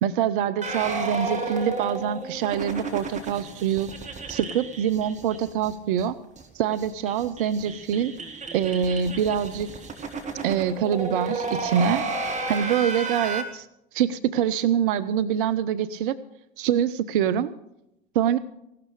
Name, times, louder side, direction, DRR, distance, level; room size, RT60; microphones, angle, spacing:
voice 1, 0.0-3.9 4.3-6.2 6.5-8.1 8.5-9.7 10.4-12.0 12.5-13.7 13.9-16.2 16.6-17.5 18.1-18.4, right 9 dB, 55° right, 14 dB, 0.6 m, -25 dB
sound 1, 0.6-5.7 6.0-6.1 6.4-6.5 6.7-13.4, right 3 dB, 20° right, 2.3 m, -32 dB
16.5 x 12.5 x 5.1 m, 0.84 s
figure-of-eight pair, 75°, 31 cm